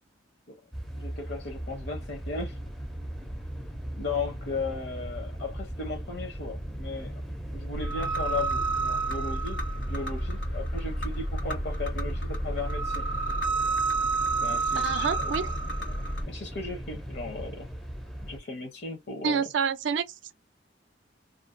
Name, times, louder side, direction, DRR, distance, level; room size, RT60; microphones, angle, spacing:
sound 1, 0.7-18.4, equal, ahead, 0.4 m, -37 dB
voice 1, 0.9-2.6 4.0-7.2 7.5-13.0 14.4-15.3 15.9-17.7 18.2-19.5, left 3 dB, 60° left, 0.6 m, -36 dB
sound 2, 7.7-16.2, right 3 dB, 90° left, 1.1 m, -30 dB
voice 2, 14.7-15.5 19.2-20.0, right 6 dB, 75° right, 0.4 m, -28 dB
2.5 x 2.3 x 2.5 m
head